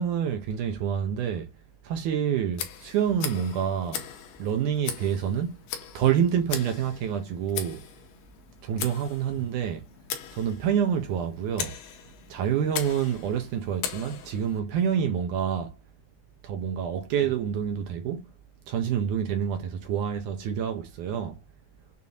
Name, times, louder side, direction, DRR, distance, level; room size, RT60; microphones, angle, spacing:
voice 1, 0.0-1.5 1.8-4.0 4.4-5.5 5.9-7.8 8.6-9.9 10.3-11.8 12.3-15.7 16.4-18.2 18.7-21.4, right 8 dB, 75° right, 2.0 m, -27 dB
Tick, 2.5-14.6, left 9 dB, 85° left, 2.7 m, -39 dB
7.0 x 2.6 x 2.7 m
omnidirectional pair, 4.0 m